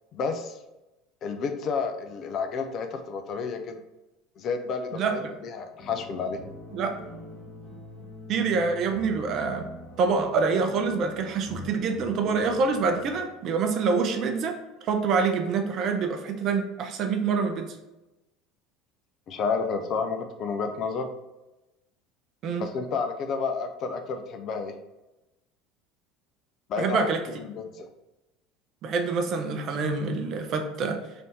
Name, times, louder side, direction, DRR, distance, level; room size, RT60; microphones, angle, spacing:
voice 1, 0.1-0.6 1.2-3.8 4.4-5.0 5.4-6.4 19.3-21.1 22.6-24.7 26.7-27.9, left 5 dB, 45° left, 6 dB, 0.4 m, -30 dB
voice 2, 4.9-5.3 6.7-7.0 8.3-9.6 10.0-14.6 14.8-17.7 22.4-22.7 26.8-27.2 28.8-31.0, right 4 dB, 45° right, 5 dB, 0.5 m, -26 dB
sound 1, 5.8-13.2, left 2 dB, 25° left, 1.4 m, -44 dB
3.3 x 2.7 x 4.1 m, 0.99 s
figure-of-eight pair, 65°, 0 cm